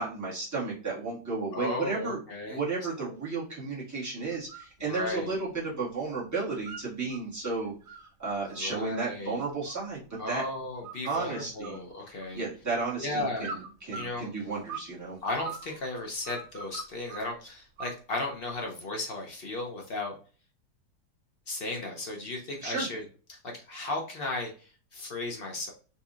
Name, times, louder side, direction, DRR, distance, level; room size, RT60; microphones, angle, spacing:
voice 1, 0.0-2.2 2.5-7.7 8.2-10.0 10.3-10.4 11.0-11.8 12.3-15.2 22.6-22.8, right 4 dB, 10° right, -7 dB, 1.5 m, -33 dB
voice 2, 1.5-2.6 3.0-3.1 4.9-5.3 8.4-9.4 10.2-12.4 13.0-13.5 13.9-14.3 15.2-20.1 21.5-23.0 23.3-25.7, left 2 dB, 50° left, 0 dB, 0.7 m, -35 dB
sound 1, 4.3-4.7 5.1-6.0 6.3-7.2 7.6-10.4 10.8-11.3 11.6-12.6 13.4-14.9 15.2-17.3 17.8-18.5, right 4 dB, 70° right, 0.6 m, -43 dB
3.9 x 2.8 x 2.4 m, 0.38 s
omnidirectional pair, 1.8 m